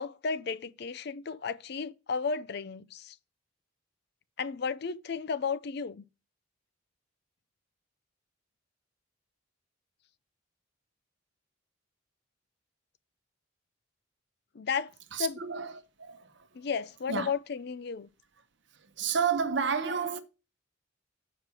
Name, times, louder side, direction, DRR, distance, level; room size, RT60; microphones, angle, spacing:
voice 1, 0.0-3.1 4.4-6.0 14.5-14.9 15.2-15.4 16.6-18.1, left 5 dB, 55° left, 0.5 m, -33 dB
voice 2, 15.1-16.5 17.1-17.3 18.8-20.2, right 6 dB, 65° right, 0.9 m, -31 dB
7.4 x 5.0 x 5.6 m
head